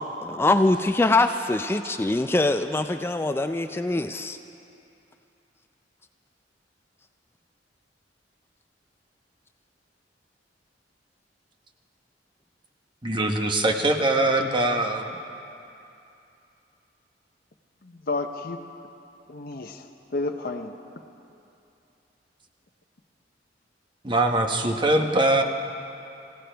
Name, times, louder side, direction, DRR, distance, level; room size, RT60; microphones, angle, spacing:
voice 1, 0.0-4.4, left 2 dB, 15° left, 7 dB, 0.4 m, -23 dB
voice 2, 13.0-15.2 24.0-25.4, right 2 dB, 25° right, 3 dB, 1.0 m, -22 dB
voice 3, 17.8-18.6 19.3-20.7, left 3 dB, 55° left, 4 dB, 0.8 m, -31 dB
25.5 x 16.5 x 3.4 m, 2.7 s
head